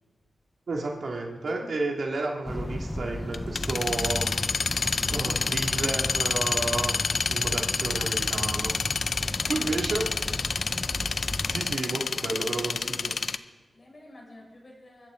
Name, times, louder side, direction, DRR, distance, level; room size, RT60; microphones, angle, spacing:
voice 1, 0.7-4.3 5.1-8.7 9.5-10.0 11.4-13.1, right 3 dB, 70° right, 0 dB, 2.5 m, -32 dB
sound 1, 2.5-11.8, left 1 dB, 10° left, 0.5 m, -35 dB
sound 2, 3.1-13.4, left 5 dB, 65° left, 0.5 m, -29 dB
voice 2, 9.3-10.5 12.1-12.4 13.5-15.1, left 1 dB, 40° left, -2 dB, 6.2 m, -50 dB
24.0 x 14.0 x 3.9 m, 1.3 s
cardioid pair, 75°, 0 cm